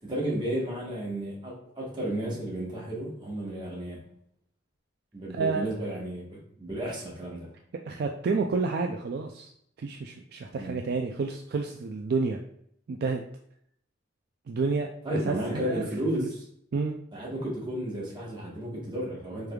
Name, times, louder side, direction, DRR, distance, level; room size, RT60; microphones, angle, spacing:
voice 1, 0.0-4.0 5.1-7.5 10.6-10.8 15.0-16.4 17.1-19.5, right 1 dB, 25° right, -4 dB, 1.2 m, -33 dB
voice 2, 5.3-5.7 7.9-9.5 9.8-12.4 12.9-13.2 14.5-14.9 15.3-15.9 16.2-16.3 16.7-16.9, right 4 dB, 55° right, 3 dB, 0.3 m, -29 dB
4.8 x 3.2 x 2.3 m, 0.70 s
head